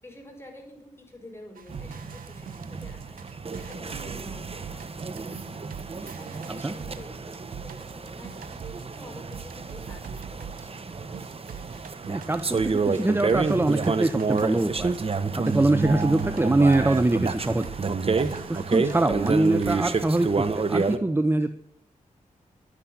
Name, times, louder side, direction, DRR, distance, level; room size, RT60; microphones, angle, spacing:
voice 1, 0.0-11.1, left 1 dB, 15° left, 2 dB, 5.2 m, -48 dB
sound 1, 1.6-9.0 9.3-20.6, right 8 dB, 90° right, 0.9 m, -44 dB
sound 2, 1.7-21.0, right 4 dB, 45° right, 1.1 m, -29 dB
voice 2, 12.1-14.9 15.4-17.7 18.5-21.5, right 2 dB, 15° right, 10 dB, 0.8 m, -23 dB
12.0 x 10.0 x 8.8 m, 0.75 s
cardioid pair, 75°, 14 cm